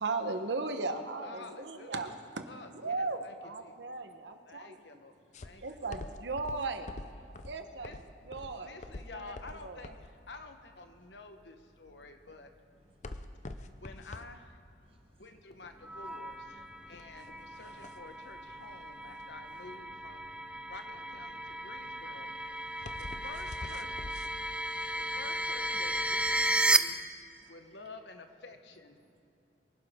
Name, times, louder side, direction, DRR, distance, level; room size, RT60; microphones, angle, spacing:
voice 1, 0.0-2.4 2.7-4.8 5.6-6.9 7.4-7.9 8.2-8.8 9.1-9.9, right 3 dB, 85° right, 7 dB, 1.1 m, -37 dB
voice 2, 1.2-2.1 2.5-3.3 3.6-3.7 4.5-5.1 5.4-5.9 6.7-6.8 7.8-8.0 8.6-12.5 13.8-14.6 15.2-20.3 20.7-22.3 23.0-24.2 25.0-27.0 27.5-29.0, left 3 dB, 75° left, 7 dB, 1.2 m, -50 dB
sound 1, 5.3-24.3, left 2 dB, 40° left, 0.6 m, -46 dB
voice 3, 13.1-13.5 14.8-15.0 16.8-16.9 22.8-23.0 24.6-25.0 27.4-27.5 29.0-29.2, right 1 dB, 30° right, 2 dB, 1.2 m, -68 dB
sound 2, 15.8-26.8, right 1 dB, 5° right, 0.4 m, -34 dB
24.0 x 11.5 x 3.7 m, 2.6 s
head